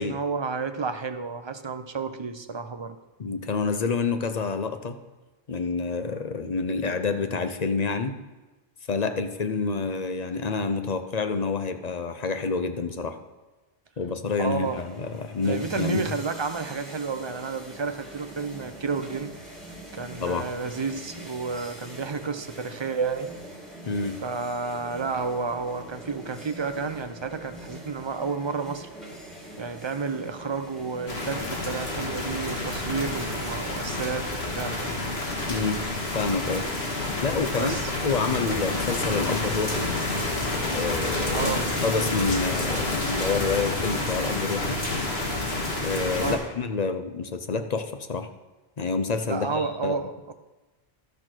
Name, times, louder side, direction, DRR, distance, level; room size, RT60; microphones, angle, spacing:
voice 1, 0.0-3.0 14.4-14.8 15.4-19.3 19.9-23.3 24.2-28.9 29.6-35.0 37.6-37.9 41.3-41.7 46.2-46.4 49.3-50.3, right 5 dB, 30° right, 8 dB, 0.7 m, -31 dB
voice 2, 3.2-5.0 5.5-8.2 8.9-13.2 14.0-16.1 20.2-20.5 23.8-24.2 35.5-35.8 36.1-36.6 37.2-39.9 40.7-41.5 41.8-44.8 45.8-48.3 48.8-50.0, left 4 dB, 45° left, 8 dB, 0.8 m, -28 dB
sound 1, 14.3-33.5, right 1 dB, ahead, 2.3 m, -44 dB
sound 2, 31.1-46.4, left 2 dB, 85° left, 2.0 m, -29 dB
12.0 x 6.6 x 6.1 m, 1.1 s
omnidirectional pair, 1.0 m